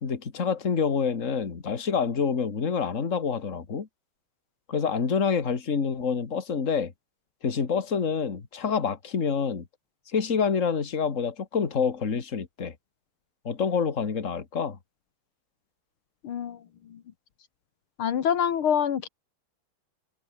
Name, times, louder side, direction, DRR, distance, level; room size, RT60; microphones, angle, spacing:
voice 1, 0.0-3.9 4.7-6.9 7.4-9.7 10.1-12.7 13.4-14.8, left 6 dB, 35° left, 2.3 m, -27 dB
voice 2, 16.2-16.6 16.9-17.0 18.0-19.1, left 8 dB, 75° left, 2.3 m, -26 dB
omnidirectional pair, 2.4 m